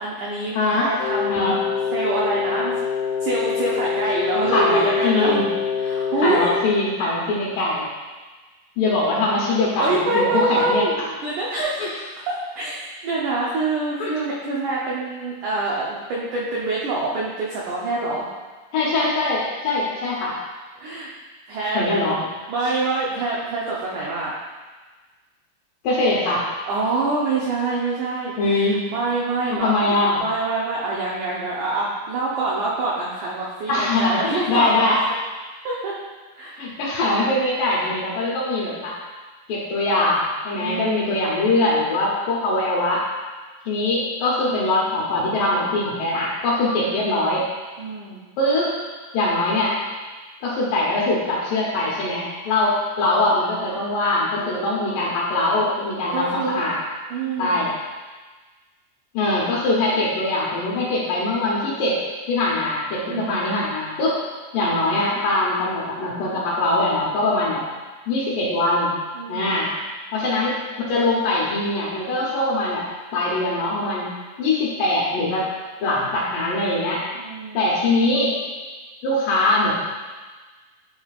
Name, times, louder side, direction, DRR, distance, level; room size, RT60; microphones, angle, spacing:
voice 1, 0.0-1.5 1.9-2.7 3.2-5.4 5.8-6.5 9.8-11.8 12.3-18.3 20.8-21.1 21.5-21.8 22.5-24.3 26.7-29.9 30.2-35.0 35.6-36.0 36.4-36.6 40.5-41.2 44.4-44.8 46.8-47.3 47.8-48.2 54.4-54.8 56.1-56.6 57.1-57.6 63.1-63.5 69.1-69.6 77.1-77.7, right 3 dB, 85° right, -5 dB, 1.7 m, -26 dB
voice 2, 0.5-0.9 1.3-1.6 4.5-5.4 6.2-7.9 8.8-10.8 11.8-11.9 14.0-14.1 18.7-20.3 21.7-22.2 25.8-26.5 28.4-28.8 29.6-30.2 33.7-35.0 36.6-38.9 39.5-43.0 43.6-47.4 48.4-48.7 49.1-49.7 50.4-56.8 57.4-57.7 59.1-62.0 62.3-64.1 64.5-67.6 68.1-68.9 69.3-69.7 70.1-70.6 70.9-72.8 73.1-74.1 74.4-75.4 75.8-77.0 77.5-78.3 79.0-79.8, left 2 dB, 70° left, -5 dB, 2.3 m, -22 dB
Wind instrument woodwind instrument, 1.0-6.7, left 7 dB, 85° left, 2.7 m, -25 dB
9.8 x 5.1 x 2.4 m, 1.3 s
omnidirectional pair, 4.7 m